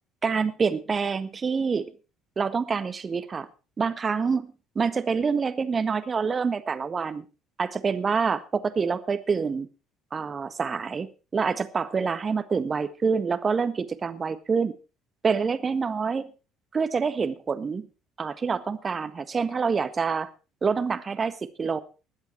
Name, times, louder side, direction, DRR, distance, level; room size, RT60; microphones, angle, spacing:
voice 1, 0.2-1.9 2.4-3.5 3.8-7.2 7.6-9.7 10.1-11.1 11.3-14.7 15.2-16.3 16.7-17.8 18.2-20.3 20.6-21.8, right 5 dB, 35° right, 11 dB, 1.5 m, -26 dB
20.5 x 8.0 x 4.6 m, 0.34 s
hypercardioid pair, 60°, 0 cm